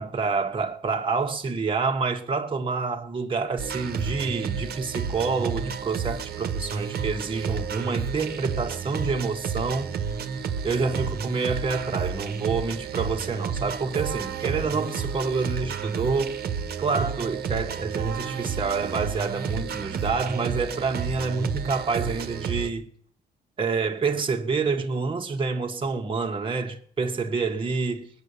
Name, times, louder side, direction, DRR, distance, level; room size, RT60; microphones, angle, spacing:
voice 1, 0.0-9.9 10.6-16.4 16.8-22.9 23.6-28.1, right 4 dB, 30° right, 1.5 m, -28 dB
sound 1, 3.6-22.7, right 6 dB, 60° right, 1.3 m, -31 dB
21.0 x 9.3 x 6.9 m
cardioid pair, 95°, 18 cm